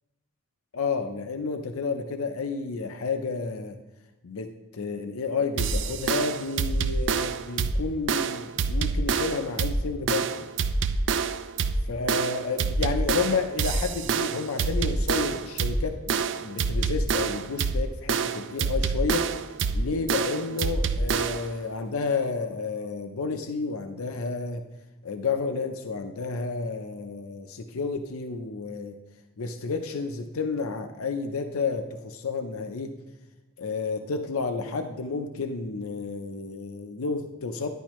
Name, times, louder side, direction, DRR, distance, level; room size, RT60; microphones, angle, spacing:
voice 1, 0.7-3.8 4.2-10.5 11.9-19.3 19.7-24.6 25.0-29.0 29.4-33.0 33.6-37.7, left 4 dB, 85° left, 7 dB, 0.6 m, -31 dB
sound 1, 5.6-21.5, right 4 dB, 55° right, 0.4 m, -27 dB
11.0 x 10.5 x 3.1 m, 1.1 s
head